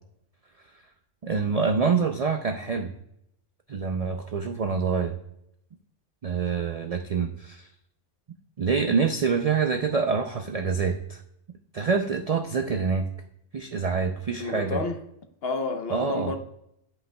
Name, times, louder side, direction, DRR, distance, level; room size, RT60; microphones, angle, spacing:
voice 1, 1.2-2.9 3.7-5.2 6.2-7.7 8.6-11.2 11.7-13.0 13.5-14.8 15.9-16.3, right 5 dB, 65° right, 0.3 m, -26 dB
voice 2, 14.4-15.0 15.4-16.4, left 3 dB, 60° left, 0.9 m, -30 dB
10.0 x 5.6 x 2.2 m
omnidirectional pair, 1.3 m